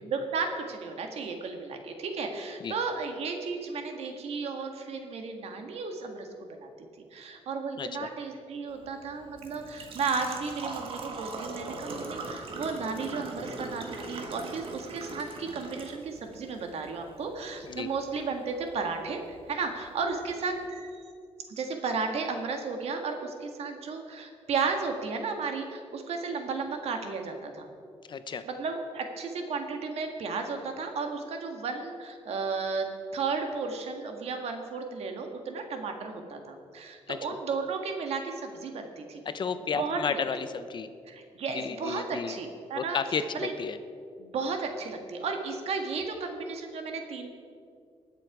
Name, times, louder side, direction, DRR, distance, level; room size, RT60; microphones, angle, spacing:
voice 1, 0.0-6.7 7.1-21.0 21.5-27.7 28.4-39.2 39.6-40.2 41.1-43.0 43.3-43.5 44.2-47.3, right 4 dB, 75° right, 4 dB, 1.6 m, -34 dB
voice 2, 7.8-8.1 17.6-17.9 28.1-28.4 37.1-37.2 39.3-40.9 41.5-42.4 42.8-43.8, left 6 dB, 45° left, 11 dB, 0.6 m, -32 dB
Engine / Trickle dribble / Fill (with liquid), 8.7-20.7, right 3 dB, 55° right, 1.6 m, -42 dB
20.5 x 6.9 x 4.8 m, 2.4 s
cardioid pair, 120°, 11 cm